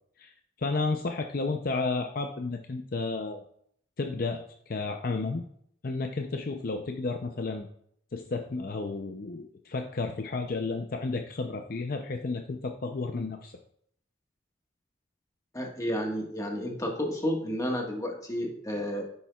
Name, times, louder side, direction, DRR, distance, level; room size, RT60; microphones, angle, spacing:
voice 1, 0.6-3.4 4.0-5.4 5.8-7.7 8.1-13.6, left 3 dB, 50° left, 5 dB, 0.6 m, -32 dB
voice 2, 15.5-19.0, equal, 20° left, 1 dB, 1.5 m, -31 dB
9.9 x 7.3 x 2.3 m, 0.66 s
head